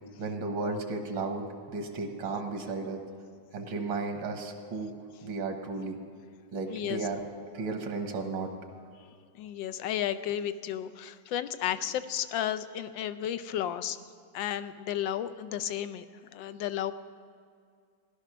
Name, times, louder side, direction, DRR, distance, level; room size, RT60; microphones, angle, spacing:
voice 1, 0.2-3.0 3.5-4.9 5.2-6.0 6.5-7.2 7.5-8.9, right 3 dB, 80° right, 5 dB, 1.9 m, -34 dB
voice 2, 6.7-7.1 9.4-14.0 14.3-16.0 16.3-16.9, left 11 dB, 80° left, 11 dB, 1.3 m, -33 dB
16.0 x 11.5 x 6.0 m, 2.2 s
omnidirectional pair, 2.1 m